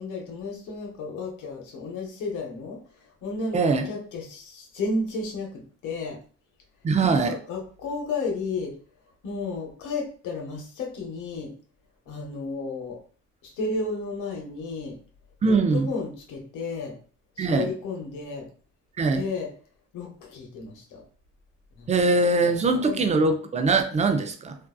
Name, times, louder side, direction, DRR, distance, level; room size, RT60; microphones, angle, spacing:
voice 1, 0.0-2.8 3.2-3.6 3.8-6.2 7.0-8.7 9.2-11.5 12.1-13.0 13.4-15.0 15.5-16.9 17.4-18.5 19.0-19.5 19.9-21.0 21.8-21.9 22.8-23.0, left 3 dB, 85° left, 0.8 m, -32 dB
voice 2, 3.5-3.9 6.8-7.4 15.4-15.9 17.4-17.7 19.0-19.2 21.9-24.6, right 3 dB, 25° right, 0.4 m, -22 dB
2.6 x 2.3 x 2.3 m
cardioid pair, 90°, 30 cm